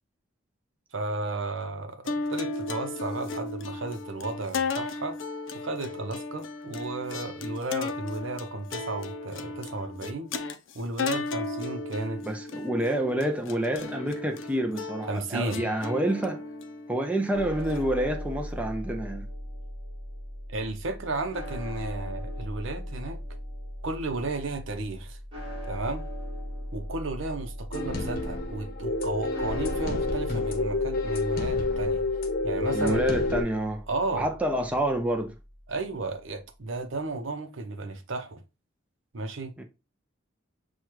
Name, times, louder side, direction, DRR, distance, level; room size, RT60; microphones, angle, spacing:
voice 1, 0.9-5.2 5.5-10.3 10.7-12.2 15.1-15.7 20.5-23.2 23.8-25.2 25.7-26.0 26.7-32.1 32.4-33.0 33.9-34.3 35.7-38.4 39.1-39.5, right 2 dB, 75° right, 0.7 m, -33 dB
sound 1, 2.1-18.5, left 3 dB, 70° left, 0.5 m, -35 dB
voice 2, 12.2-16.4 16.9-19.3 32.7-33.8 34.1-35.4 39.6-39.7, right 1 dB, 5° right, 0.4 m, -28 dB
sound 2, 17.3-35.6, equal, 25° right, 1.6 m, -39 dB
sound 3, 27.7-33.4, left 3 dB, 50° left, 0.8 m, -29 dB
6.2 x 2.3 x 3.0 m
head